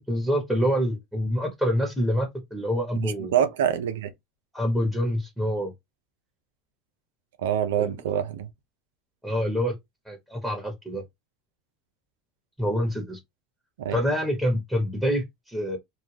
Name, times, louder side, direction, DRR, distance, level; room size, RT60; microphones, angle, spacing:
voice 1, 0.1-3.3 4.5-5.7 7.8-7.9 9.2-9.7 10.1-11.0 12.6-13.2 13.9-15.8, equal, ahead, 1.0 m, -26 dB
voice 2, 3.0-4.1 7.4-8.5 13.8-13.9, right 9 dB, 80° right, 0.5 m, -25 dB
2.4 x 2.1 x 3.2 m
hypercardioid pair, 95°, 0 cm